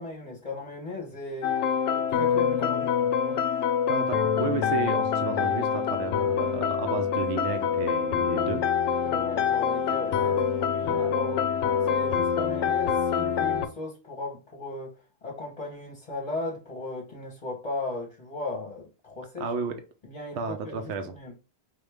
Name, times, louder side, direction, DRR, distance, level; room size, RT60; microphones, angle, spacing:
voice 1, 0.0-3.4 9.0-14.9 15.2-19.5 20.0-21.3, left 2 dB, 35° left, 0.9 m, -37 dB
sound 1, 1.4-13.7, left 7 dB, 85° left, 0.9 m, -26 dB
voice 2, 3.9-8.6 9.7-9.9 19.4-19.8 20.4-21.1, right 5 dB, 75° right, 0.9 m, -32 dB
4.8 x 2.3 x 3.3 m
omnidirectional pair, 1.1 m